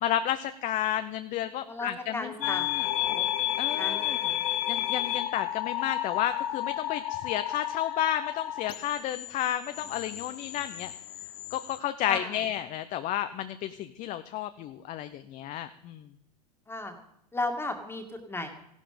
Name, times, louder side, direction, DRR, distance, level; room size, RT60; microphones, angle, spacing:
voice 1, 0.0-2.9 3.6-4.2 4.7-10.9 11.5-16.1, left 11 dB, 35° left, 10 dB, 0.8 m, -32 dB
voice 2, 1.7-3.3 3.8-4.4 12.1-12.4 16.7-17.0 17.3-18.5, left 2 dB, 10° left, 5 dB, 2.1 m, -35 dB
sound 1, 2.4-11.8, left 14 dB, 60° left, 1.2 m, -32 dB
15.0 x 11.5 x 5.1 m, 0.79 s
hypercardioid pair, 100°, 21 cm